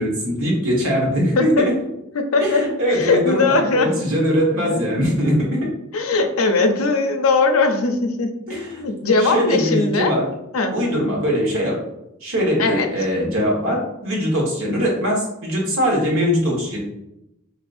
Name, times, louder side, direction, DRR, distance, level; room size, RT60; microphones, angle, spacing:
voice 1, 0.0-1.7 2.4-5.7 8.5-8.8 9.2-10.3 10.7-11.8 12.2-16.8, equal, 80° right, -2 dB, 1.4 m, -21 dB
voice 2, 2.1-4.0 4.7-4.8 5.9-10.1 10.5-10.7 12.6-12.9, left 3 dB, 80° left, 6 dB, 0.6 m, -20 dB
5.1 x 2.8 x 2.6 m, 0.85 s
head